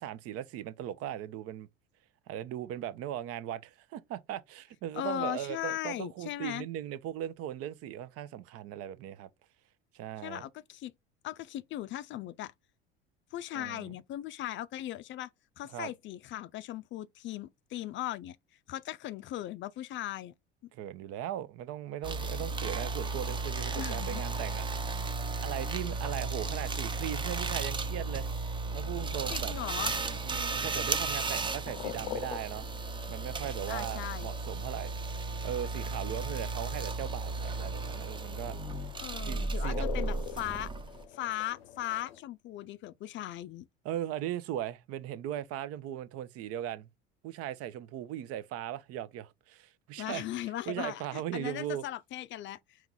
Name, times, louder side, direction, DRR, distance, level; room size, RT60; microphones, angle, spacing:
voice 1, 0.0-1.7 2.3-9.3 9.9-10.4 13.5-13.9 15.7-15.9 20.7-24.9 25.4-28.3 28.7-29.5 29.9-32.7 33.1-34.9 35.4-38.6 39.2-39.9 43.8-46.9 47.2-50.2 50.7-51.8, right 11 dB, 50° right, 0.6 m, -38 dB
voice 2, 4.9-6.7 10.2-10.9 11.2-12.5 13.3-15.3 15.6-18.4 18.7-20.3 23.8-24.2 29.3-29.9 33.7-34.3 39.0-40.7 41.1-43.7 50.0-52.8, left 13 dB, 40° left, 0.4 m, -38 dB
sound 1, 22.0-41.0, right 3 dB, 15° right, 0.6 m, -34 dB
sound 2, 28.6-42.2, left 12 dB, 80° left, 0.6 m, -47 dB
4.5 x 3.0 x 3.8 m
hypercardioid pair, 75°, 30 cm